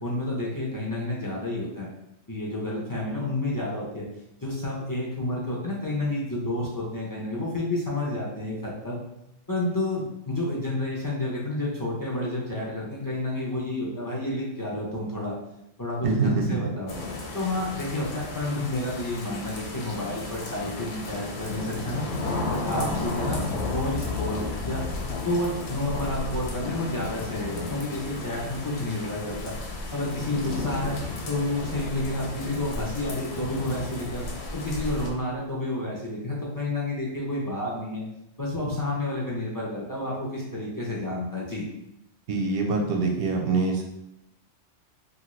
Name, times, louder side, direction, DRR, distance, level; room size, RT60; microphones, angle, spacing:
voice 1, 0.0-1.9 2.3-4.1 4.4-9.0 9.5-15.3 15.8-16.9 17.3-22.0 22.7-29.5 29.9-31.0 31.3-34.3 34.5-38.0 38.4-41.6, left 1 dB, 30° left, -5 dB, 0.3 m, -30 dB
voice 2, 16.0-16.6 42.3-43.8, right 3 dB, 60° right, 1 dB, 0.7 m, -24 dB
sound 1, 16.9-35.1, left 3 dB, 65° left, 0.8 m, -33 dB
2.8 x 2.5 x 3.0 m, 0.86 s
omnidirectional pair, 1.2 m